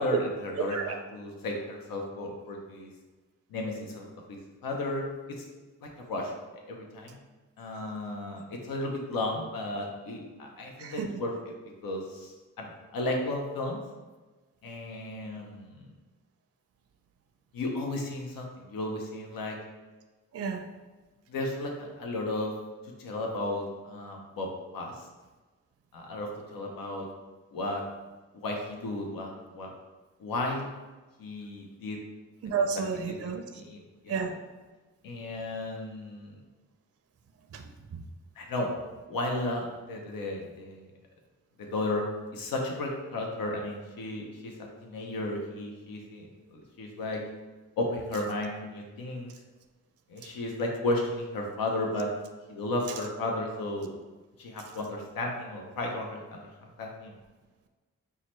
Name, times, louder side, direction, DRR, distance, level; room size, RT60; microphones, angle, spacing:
voice 1, 0.0-2.9 3.5-5.4 5.8-7.2 7.6-11.3 11.8-13.8 14.6-15.9 17.5-19.6 21.3-22.5 23.0-24.5 24.7-25.1 25.9-27.1 27.5-27.8 28.3-29.7 30.2-30.7 31.2-32.0 33.1-34.2 35.0-36.4 38.4-38.7 39.1-40.9 41.6-42.0 42.3-47.2 47.8-49.3 50.1-52.1 52.5-53.9 54.4-56.5 56.8-57.1, left 2 dB, 85° left, 0 dB, 0.7 m, -34 dB
voice 2, 10.8-11.2 20.3-20.6 32.4-33.4 34.1-34.3 37.5-37.6, right 5 dB, 45° right, 5 dB, 0.5 m, -31 dB
5.5 x 2.2 x 3.0 m, 1.3 s
cardioid pair, 55°, 33 cm